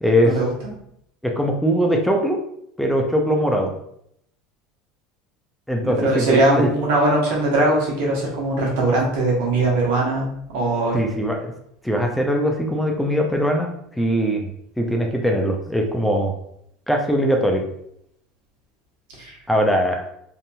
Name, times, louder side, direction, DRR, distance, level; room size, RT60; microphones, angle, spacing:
voice 1, 0.0-0.3 1.2-2.4 2.8-3.7 5.7-6.7 10.9-11.5 11.8-13.7 14.0-14.5 14.8-16.3 16.9-17.6 19.5-20.1, equal, ahead, 1 dB, 0.4 m, -21 dB
voice 2, 5.8-11.0 19.2-19.4, right 2 dB, 75° right, -3 dB, 1.0 m, -20 dB
2.8 x 2.6 x 2.2 m, 0.72 s
supercardioid pair, 105°, 0 cm